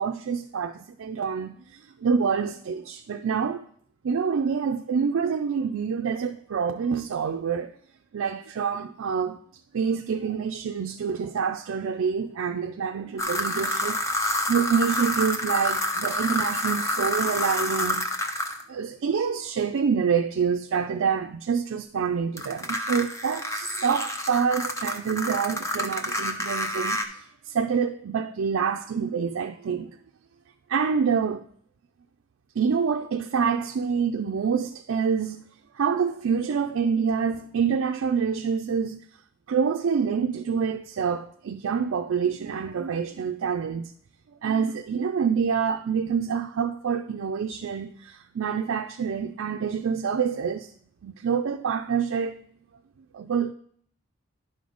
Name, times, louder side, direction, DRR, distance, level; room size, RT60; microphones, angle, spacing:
voice 1, 0.0-3.6 4.0-7.7 8.1-9.4 9.7-18.0 18.7-30.0 30.7-31.4 32.6-35.4 35.7-39.0 39.5-43.9 44.4-50.7 51.0-52.4 53.1-53.5, right 6 dB, 75° right, 0.4 m, -27 dB
sound 1, 13.2-18.6 22.4-27.0, left 1 dB, 15° left, 0.6 m, -28 dB
11.0 x 5.1 x 3.9 m
head